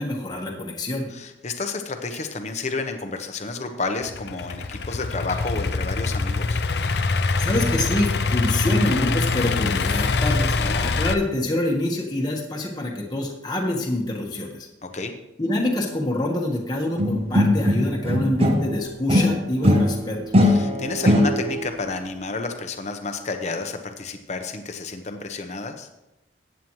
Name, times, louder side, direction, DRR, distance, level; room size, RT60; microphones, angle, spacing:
voice 1, 0.0-1.1 7.4-14.7 15.4-20.2, left 1 dB, 20° left, -2 dB, 1.3 m, -26 dB
voice 2, 1.1-6.6 10.6-10.9 14.8-15.1 20.4-25.9, left 3 dB, 40° left, 5 dB, 0.9 m, -31 dB
Idling / Accelerating revving vroom, 4.0-11.1, left 3 dB, 60° left, 0.6 m, -24 dB
sound 1, 17.0-18.8 19.1-21.7, left 1 dB, 30° right, 0.9 m, -20 dB
14.5 x 9.3 x 3.2 m, 0.95 s
head